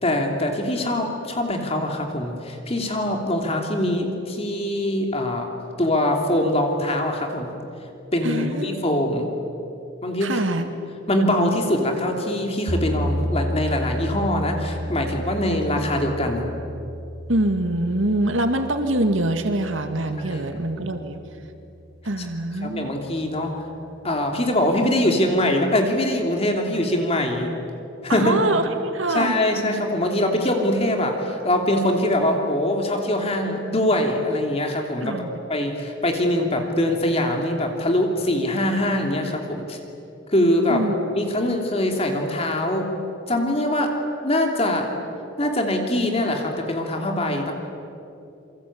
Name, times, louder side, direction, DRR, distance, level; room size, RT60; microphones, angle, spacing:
voice 1, 0.0-5.5 5.8-7.5 8.1-9.3 10.0-10.4 11.1-16.5 20.3-20.4 20.7-20.9 22.2-22.3 22.6-23.6 24.0-27.5 28.0-28.3 29.1-39.8 40.3-40.8 41.1-42.9 43.3-43.9 44.2-44.9 45.4-47.5, left 1 dB, 30° left, 3 dB, 2.9 m, -23 dB
voice 2, 8.2-8.8 10.2-10.7 17.3-21.2 22.0-23.0 28.1-29.3 35.0-35.3 40.7-41.0, right 1 dB, 75° right, 6 dB, 2.2 m, -24 dB
sound 1, 12.7-22.7, equal, 20° right, 2.5 m, -32 dB
28.0 x 24.5 x 8.7 m, 2.7 s
head